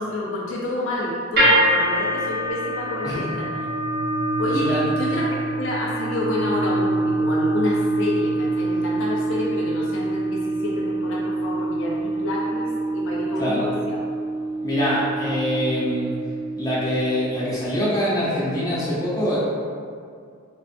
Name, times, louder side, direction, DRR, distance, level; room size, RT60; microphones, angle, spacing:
voice 1, 0.0-3.5 4.4-14.0, left 2 dB, 65° left, -4 dB, 0.4 m, -29 dB
sound 1, 1.4-17.6, right 1 dB, 50° right, 1.0 m, -25 dB
voice 2, 3.0-3.4 4.5-4.8 13.4-13.7 14.6-16.1 16.6-19.4, equal, 15° left, -9 dB, 0.6 m, -24 dB
2.5 x 2.4 x 2.5 m, 2.3 s
head